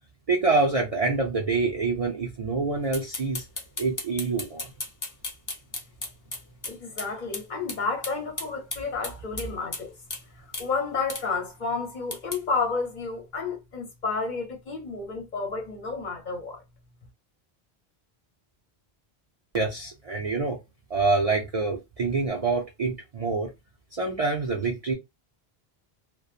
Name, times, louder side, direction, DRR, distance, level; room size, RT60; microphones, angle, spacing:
voice 1, 0.3-3.4 3.8-4.7 19.5-20.6 20.9-23.5 23.9-24.9, right 3 dB, 50° right, 0.5 m, -26 dB
sound 1, 2.9-7.1 7.3-7.4 7.7-7.8 8.0-9.8 10.1-10.2 10.5-10.7 11.1-11.2 12.1-12.4, left 2 dB, 30° left, 0.3 m, -34 dB
voice 2, 6.7-9.9 10.6-16.6, left 4 dB, 50° left, 0.8 m, -31 dB
2.8 x 2.1 x 2.4 m
omnidirectional pair, 1.0 m